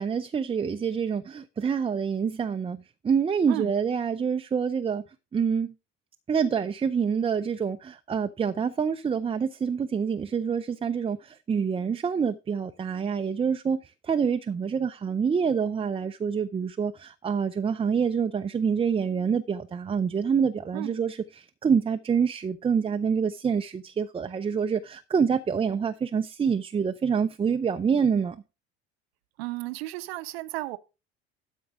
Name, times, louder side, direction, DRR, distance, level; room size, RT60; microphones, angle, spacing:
voice 1, 0.0-2.8 3.0-5.0 5.3-5.7 6.3-28.4, right 6 dB, 15° right, 0.5 m, -26 dB
voice 2, 29.4-30.8, right 18 dB, 70° right, 0.8 m, -33 dB
12.5 x 4.5 x 4.9 m
figure-of-eight pair, 65°, 32 cm